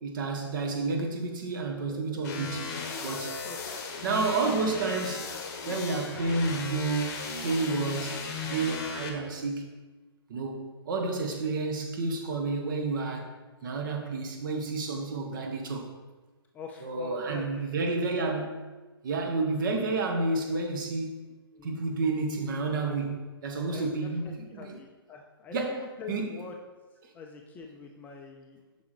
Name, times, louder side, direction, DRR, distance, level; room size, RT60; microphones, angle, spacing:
voice 1, 0.0-2.7 3.0-3.4 4.0-5.3 5.7-9.7 10.3-13.3 13.6-15.9 16.8-18.6 19.0-21.2 21.6-24.8 25.5-26.4, right 3 dB, 50° right, 3 dB, 1.2 m, -30 dB
sound 1, 2.2-9.1, left 4 dB, 45° left, 1.2 m, -36 dB
voice 2, 3.1-3.6 16.5-17.9 20.4-20.6 21.5-21.9 22.8-23.0 23.7-26.6 27.1-28.6, left 5 dB, 10° left, 1 dB, 0.3 m, -45 dB
7.4 x 6.0 x 3.2 m, 1.2 s
hypercardioid pair, 145°, 13 cm